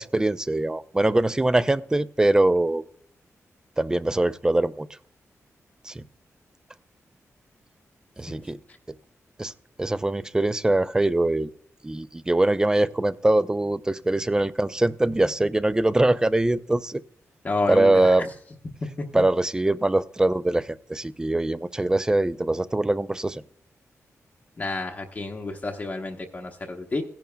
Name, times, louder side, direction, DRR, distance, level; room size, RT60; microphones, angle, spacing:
voice 1, 0.0-2.8 3.8-4.9 5.8-6.0 8.2-8.6 9.4-9.5 9.8-11.5 11.8-17.0 17.7-18.3 19.1-23.4, right 2 dB, 10° right, 16 dB, 0.3 m, -22 dB
voice 2, 17.4-18.1 19.0-19.1 24.6-27.0, left 3 dB, 30° left, 1 dB, 0.8 m, -29 dB
16.5 x 10.5 x 2.2 m, 0.68 s
wide cardioid pair, 145°, 6 cm